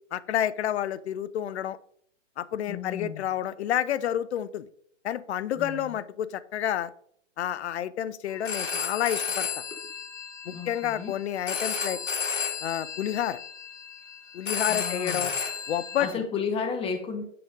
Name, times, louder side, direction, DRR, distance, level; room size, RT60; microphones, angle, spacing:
voice 1, 0.1-1.8 2.4-4.7 5.0-6.9 7.4-9.5 10.5-12.0 12.6-13.4 14.3-15.3 15.7-16.1, left 10 dB, 60° left, 16 dB, 0.6 m, -29 dB
voice 2, 2.7-3.3 5.6-5.9 10.4-11.1 14.7-15.3 16.0-17.2, left 5 dB, 15° left, 7 dB, 0.8 m, -33 dB
Telephone, 8.3-16.1, left 6 dB, 80° left, 2.2 m, -33 dB
6.9 x 5.2 x 5.1 m, 0.65 s
hypercardioid pair, 130°, 37 cm